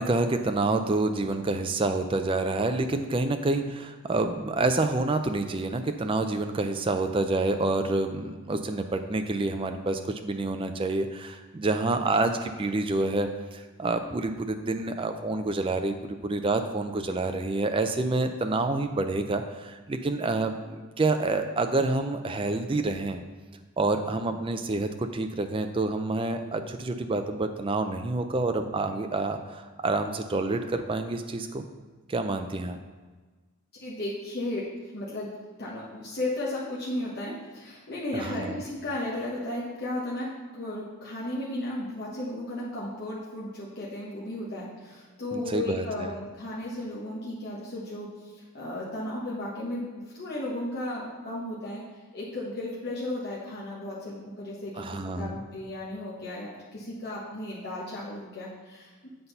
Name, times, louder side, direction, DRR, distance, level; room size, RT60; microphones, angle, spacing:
voice 1, 0.0-23.2 23.8-31.6 32.1-32.8 38.2-38.6 45.3-46.1 54.8-55.4, right 2 dB, 25° right, 7 dB, 0.4 m, -28 dB
voice 2, 33.8-34.7 34.9-35.3 35.6-51.8 52.1-58.9, left 1 dB, 45° left, -7 dB, 1.2 m, -35 dB
7.9 x 4.0 x 5.5 m, 1.3 s
head